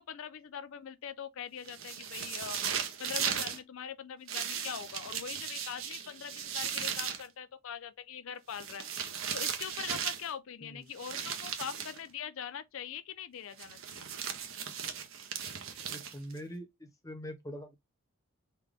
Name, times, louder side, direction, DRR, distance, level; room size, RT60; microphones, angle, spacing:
voice 1, 0.0-2.6 3.0-8.9 9.3-14.1, left 8 dB, 65° left, 0.4 m, -42 dB
sound 1, 1.7-3.6 4.3-7.3 8.5-10.3 11.0-12.0 13.6-16.4, right 8 dB, 60° right, 0.7 m, -37 dB
voice 2, 15.9-17.8, equal, 15° left, 0.7 m, -44 dB
3.9 x 2.2 x 3.3 m
head